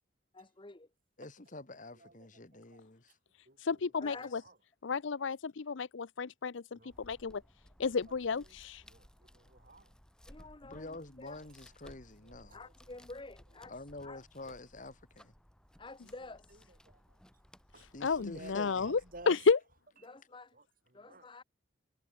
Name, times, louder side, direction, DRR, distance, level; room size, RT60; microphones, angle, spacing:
voice 1, 0.3-0.9 4.0-4.4 10.3-11.4 12.5-13.8 14.0-14.2 15.8-16.7 20.0-20.6 20.9-21.4, left 3 dB, 25° left, 1.0 m, -50 dB
voice 2, 1.2-3.2 10.6-12.6 13.7-15.3 17.9-18.9, left 2 dB, 40° left, 1.9 m, -47 dB
voice 3, 1.9-2.8 3.5-4.6 5.2-5.3 6.7-7.0 8.1-8.6 8.8-9.9 12.2-12.7 14.4-14.6 16.0-16.1 16.5-16.6 16.9-17.2 17.7-17.9 18.1-19.4 20.5-20.7 20.9-21.3, right 2 dB, 45° right, 8.0 m, -54 dB
voice 4, 3.6-4.4 4.8-7.4 7.8-8.8 18.0-19.0 19.3-19.6, left 5 dB, 75° left, 0.6 m, -31 dB
sound 1, 6.9-19.3, equal, 5° left, 3.4 m, -60 dB
head